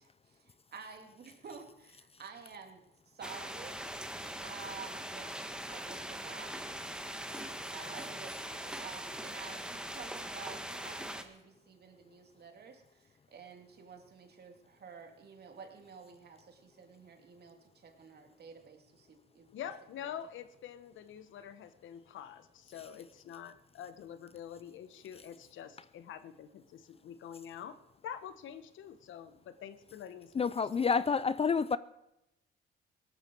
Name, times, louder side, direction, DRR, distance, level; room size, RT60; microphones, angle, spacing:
voice 1, 0.0-3.8 4.4-5.3 5.7-6.6 7.5-19.7, right 5 dB, 55° right, 2.7 m, -51 dB
sound 1, 3.2-11.2, right 1 dB, 5° right, 1.5 m, -41 dB
voice 2, 19.5-27.8 28.0-30.5 30.8-30.9, left 9 dB, 80° left, 1.2 m, -46 dB
voice 3, 30.3-31.8, left 5 dB, 30° left, 0.5 m, -29 dB
18.0 x 13.0 x 4.7 m
cardioid pair, 90°, 20 cm